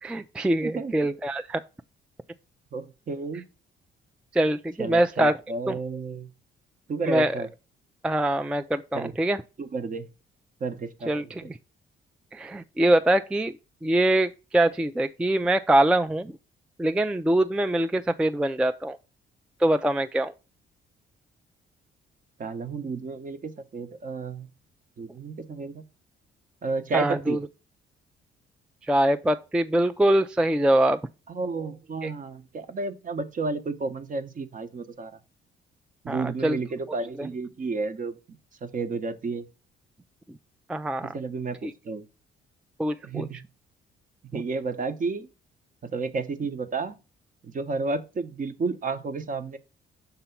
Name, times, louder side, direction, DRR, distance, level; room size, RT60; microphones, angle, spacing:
voice 1, 0.0-1.6 4.3-5.4 5.7-5.8 7.1-7.4 8.0-9.4 11.1-11.6 12.3-13.5 13.8-16.3 16.8-19.0 19.6-20.3 26.9-27.4 28.9-31.0 32.0-32.1 36.1-36.6 37.2-37.3 40.7-41.1 41.6-41.7 42.8-43.3, right 1 dB, 5° right, 0.3 m, -23 dB
voice 2, 0.6-0.9 2.7-3.5 4.8-6.3 6.9-7.5 8.9-9.1 9.6-10.1 10.6-11.1 22.4-24.5 25.0-25.8 26.6-27.4 31.3-35.1 36.0-39.4 41.0-42.0 43.0-43.4 44.3-45.3 45.8-47.0 47.4-49.6, right 4 dB, 40° right, 0.8 m, -31 dB
6.8 x 2.9 x 5.7 m
cardioid pair, 90°, 20 cm